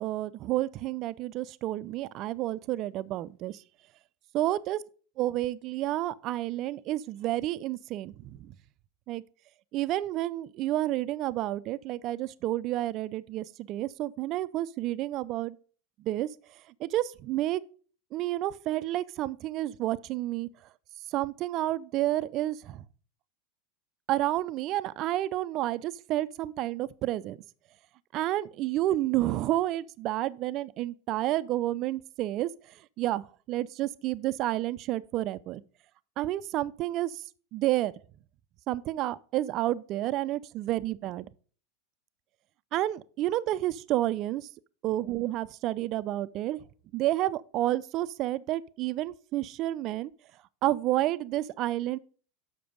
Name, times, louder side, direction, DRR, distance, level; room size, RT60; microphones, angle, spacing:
voice 1, 0.0-3.6 4.3-4.8 5.2-8.5 9.1-9.2 9.7-15.6 16.0-17.6 18.1-20.5 21.1-22.8 24.1-27.4 28.1-35.6 36.2-37.2 37.5-37.9 38.7-41.3 42.7-44.5 44.8-46.6 46.9-50.1 50.6-52.0, right 15 dB, 50° right, 0.4 m, -30 dB
6.8 x 5.9 x 5.1 m
hypercardioid pair, 95°, 0 cm